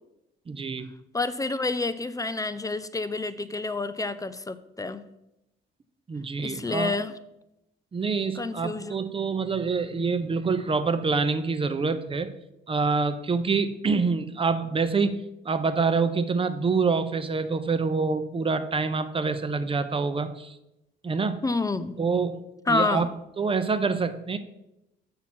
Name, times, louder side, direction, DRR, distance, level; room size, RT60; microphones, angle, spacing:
voice 1, 0.5-0.9 6.1-7.0 7.9-12.3 12.7-20.6 21.0-21.4 22.0-22.4 22.7-23.1 23.4-24.4, right 4 dB, 25° right, 10 dB, 0.6 m, -26 dB
voice 2, 1.1-5.0 6.4-7.1 8.4-8.9 21.4-22.0 22.7-23.1, left 3 dB, 15° left, 12 dB, 0.4 m, -28 dB
7.3 x 5.8 x 4.3 m, 0.88 s
cardioid pair, 90°, 20 cm